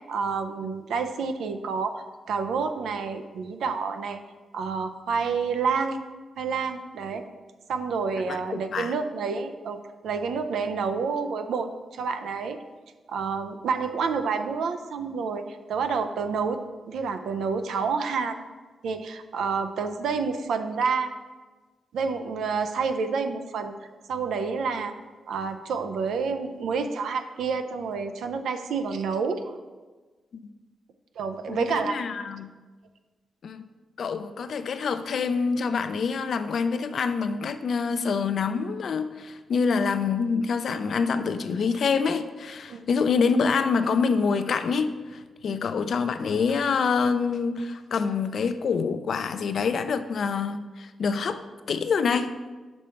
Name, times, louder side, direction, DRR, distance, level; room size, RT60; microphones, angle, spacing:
voice 1, 0.1-4.2 4.5-6.0 6.4-7.2 7.7-9.8 10.0-12.6 13.1-16.6 16.9-18.4 18.8-21.1 21.9-23.7 24.1-24.9 25.3-29.5 31.2-32.0 42.7-43.1 45.5-45.6, right 5 dB, 85° right, 8 dB, 0.5 m, -29 dB
voice 2, 8.3-8.9 31.5-32.5 33.4-33.6 34.0-51.4 51.7-52.3, left 5 dB, 60° left, 10 dB, 0.4 m, -26 dB
6.2 x 5.3 x 4.4 m, 1.3 s
cardioid pair, 105°, 0 cm